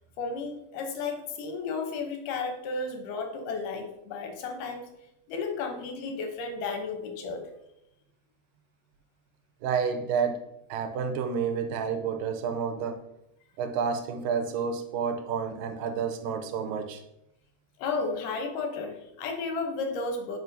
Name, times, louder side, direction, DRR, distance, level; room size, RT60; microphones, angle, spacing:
voice 1, 0.2-4.9 5.3-7.5 17.8-20.4, left 4 dB, 80° left, 4 dB, 2.4 m, -33 dB
voice 2, 9.6-10.4 10.7-13.0 13.6-17.0 18.1-18.2, right 6 dB, 90° right, 7 dB, 2.4 m, -30 dB
9.1 x 5.1 x 2.7 m, 0.84 s
omnidirectional pair, 3.8 m